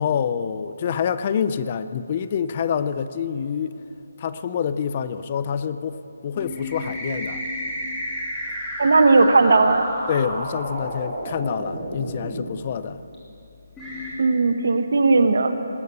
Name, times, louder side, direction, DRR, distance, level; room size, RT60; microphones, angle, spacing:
voice 1, 0.0-3.8 4.2-7.4 10.1-13.0, left 7 dB, 35° left, 13 dB, 0.4 m, -26 dB
sound 1, 6.3-12.4 13.1-13.2 13.8-14.1, equal, 5° left, 2.8 m, -31 dB
voice 2, 8.8-9.9 14.2-15.5, right 3 dB, 70° right, 9 dB, 1.0 m, -17 dB
19.0 x 8.4 x 6.8 m, 2.7 s
hypercardioid pair, 165°, 0 cm